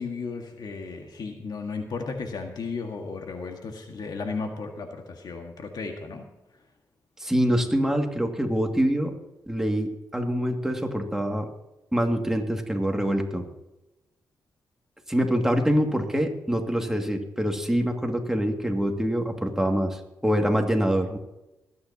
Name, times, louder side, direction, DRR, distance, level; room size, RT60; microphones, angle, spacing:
voice 1, 0.0-6.3, left 4 dB, 70° left, 4 dB, 1.7 m, -34 dB
voice 2, 7.2-9.1 9.5-11.5 11.9-13.5 15.1-21.2, equal, 5° right, 3 dB, 2.2 m, -25 dB
24.5 x 9.6 x 2.9 m, 0.96 s
cardioid pair, 55°, 7 cm